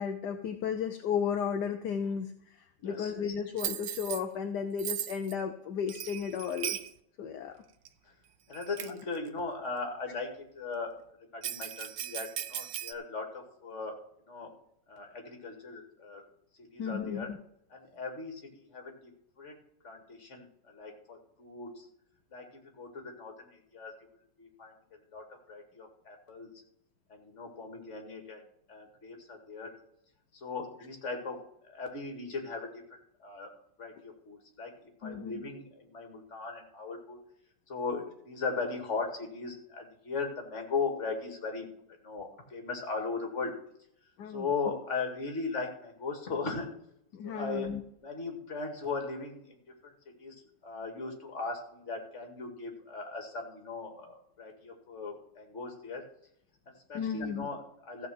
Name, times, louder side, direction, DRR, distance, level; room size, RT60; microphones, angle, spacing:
voice 1, 0.0-6.8 7.2-7.6 16.8-17.4 35.0-35.5 44.2-44.5 47.1-47.8 56.9-57.5, left 7 dB, 70° left, 6 dB, 1.4 m, -34 dB
Bell, 3.6-4.2 4.8-5.3 5.9-6.9 7.9-8.0 8.5-9.0 11.4-12.9, right 12 dB, 80° right, 1.4 m, -37 dB
voice 2, 8.5-10.3 10.5-10.9 11.3-13.9 14.3-14.5 14.9-16.2 16.6-17.3 17.7-19.1 19.4-19.6 19.8-21.9 22.3-22.5 22.8-23.9 24.4-24.7 25.1-26.5 27.1-29.7 30.3-31.4 31.7-32.7 33.2-33.5 33.8-37.2 37.7-41.7 42.0-43.5 44.3-46.7 47.2-47.7 48.0-49.6 49.8-49.9 50.2-50.3 50.6-56.0 56.7-58.1, left 4 dB, 40° left, 3 dB, 2.4 m, -38 dB
15.0 x 5.2 x 7.7 m, 0.74 s
omnidirectional pair, 1.9 m